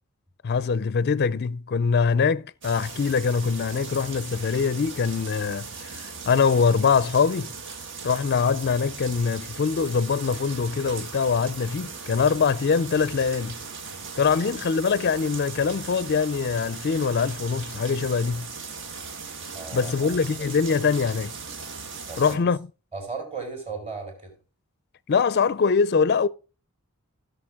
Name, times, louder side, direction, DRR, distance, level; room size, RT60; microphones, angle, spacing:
voice 1, 0.4-7.5 8.0-13.6 14.2-18.5 19.7-21.3 22.2-22.6 25.1-26.3, left 5 dB, 50° left, 0.4 m, -23 dB
sound 1, 2.6-22.4, right 5 dB, 60° right, 1.3 m, -38 dB
voice 2, 19.5-19.9 22.1-22.4 22.9-24.3, right 4 dB, 30° right, 4.2 m, -35 dB
16.0 x 6.8 x 3.6 m
head